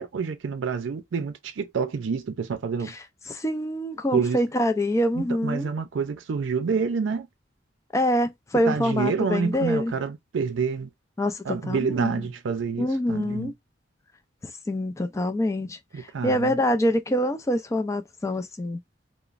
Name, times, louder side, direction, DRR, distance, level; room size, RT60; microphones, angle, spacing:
voice 1, 0.0-2.9 4.1-4.4 5.2-7.3 8.7-10.9 11.5-13.5 15.9-16.6, right 5 dB, 90° right, 0.4 m, -28 dB
voice 2, 2.9-5.7 7.9-9.9 11.2-12.3 12.8-13.5 14.7-18.8, equal, 15° left, 0.3 m, -25 dB
3.0 x 2.0 x 2.4 m
head